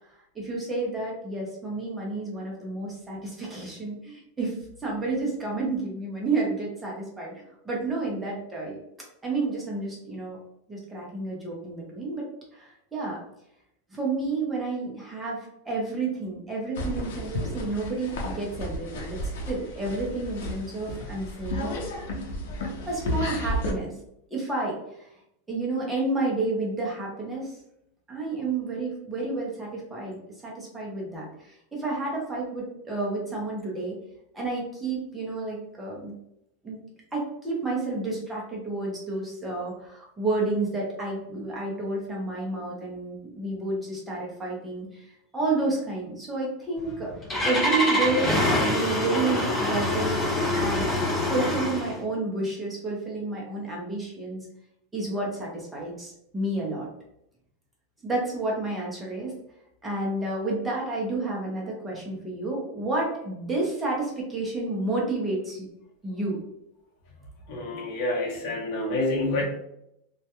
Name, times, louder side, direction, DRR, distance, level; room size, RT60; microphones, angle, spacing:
voice 1, 0.3-8.8 9.2-10.4 10.7-12.3 12.5-13.2 13.9-19.2 19.5-21.8 22.9-23.9 24.3-25.1 25.5-27.6 28.1-34.0 34.3-36.1 36.6-36.8 37.1-47.1 47.4-50.2 50.5-51.0 51.3-54.5 54.9-56.9 58.0-59.3 59.8-65.7 66.0-66.4, right 2 dB, 10° right, -4 dB, 0.6 m, -30 dB
sound 1, 16.7-23.7, left 1 dB, 85° left, 0.6 m, -33 dB
Engine starting, 46.8-52.0, left 1 dB, 20° left, 0.9 m, -25 dB
voice 2, 67.5-69.4, left 2 dB, 50° left, -2 dB, 0.8 m, -28 dB
2.3 x 2.1 x 2.8 m, 0.79 s
supercardioid pair, 160°, 0 cm